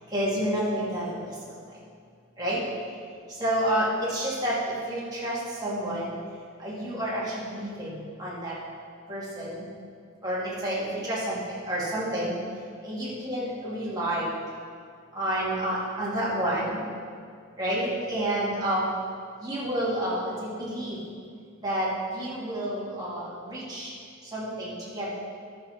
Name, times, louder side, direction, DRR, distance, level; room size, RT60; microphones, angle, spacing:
voice 1, 0.1-1.2 2.4-2.6 3.3-6.2 6.6-8.6 9.1-9.6 10.2-12.3 12.8-14.3 15.1-16.8 17.6-18.9 19.4-21.0 21.6-23.9 24.3-25.1, right 1 dB, 20° right, -8 dB, 2.9 m, -29 dB
11.0 x 7.0 x 6.0 m, 2.1 s
head